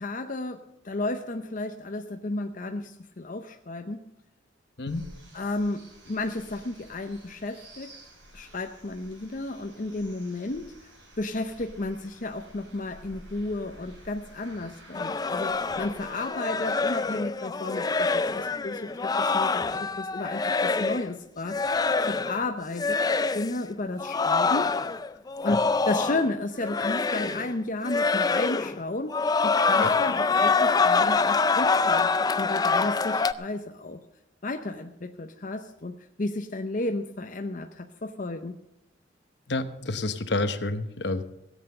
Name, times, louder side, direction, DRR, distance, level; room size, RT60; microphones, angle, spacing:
voice 1, 0.0-4.1 5.3-7.9 8.3-10.8 11.2-21.6 22.1-24.7 25.4-32.1 32.4-34.0 34.4-38.6, left 2 dB, 45° left, 5 dB, 0.7 m, -33 dB
sound 1, 4.9-16.2, right 1 dB, 75° right, 6.0 m, -51 dB
sound 2, 14.9-21.1 21.5-22.4 22.7-23.5 24.0-26.3 26.6-27.5 27.8-28.8 29.1-33.3, left 4 dB, 20° left, 0.4 m, -25 dB
voice 2, 39.5-41.2, left 2 dB, 65° left, 10 dB, 1.0 m, -29 dB
16.5 x 8.3 x 6.7 m, 0.82 s
head